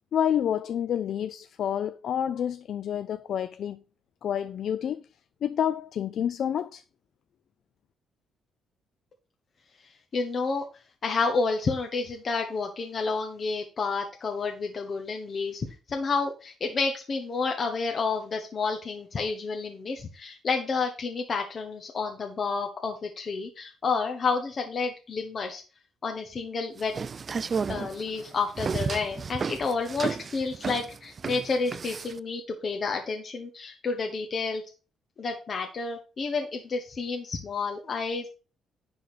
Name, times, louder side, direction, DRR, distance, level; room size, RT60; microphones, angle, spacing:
voice 1, 0.1-3.8 4.2-5.1 5.4-6.8, left 9 dB, 65° left, 0.4 m, -28 dB
voice 2, 10.1-10.6 11.0-25.6 26.0-26.9 27.7-34.6 35.2-38.3, left 4 dB, 45° left, 1.2 m, -30 dB
sound 1, 26.8-32.2, right 5 dB, 40° right, 0.3 m, -32 dB
10.5 x 3.9 x 5.0 m
cardioid pair, 90°, 0 cm